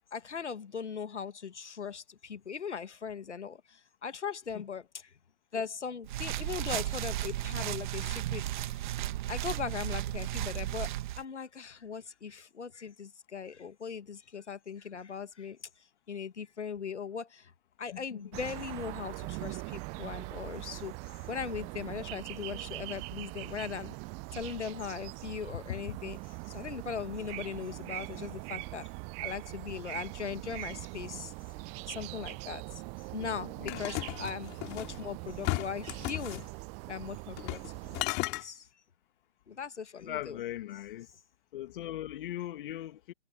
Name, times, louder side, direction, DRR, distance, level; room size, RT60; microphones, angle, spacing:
voice 1, 0.1-5.1 5.5-8.7 9.3-15.6 16.1-17.5 17.8-20.9 21.3-24.0 24.3-26.2 26.4-28.9 29.2-31.3 31.9-32.8 33.1-36.4 36.9-38.7 39.5-40.4, left 6 dB, 80° left, 1.7 m, -39 dB
sound 1, 6.0-11.2, right 15 dB, 45° right, 1.4 m, -34 dB
voice 2, 17.9-18.2 25.7-26.0 33.6-33.8 40.1-41.1 41.5-43.1, left 13 dB, 50° left, 2.1 m, -39 dB
sound 2, 18.3-38.1, right 29 dB, 20° right, 0.6 m, -42 dB
sound 3, 33.7-35.0 35.4-36.5 37.4-37.7 37.9-38.4, left 26 dB, 30° left, 2.7 m, -34 dB
figure-of-eight pair, 125°, 34 cm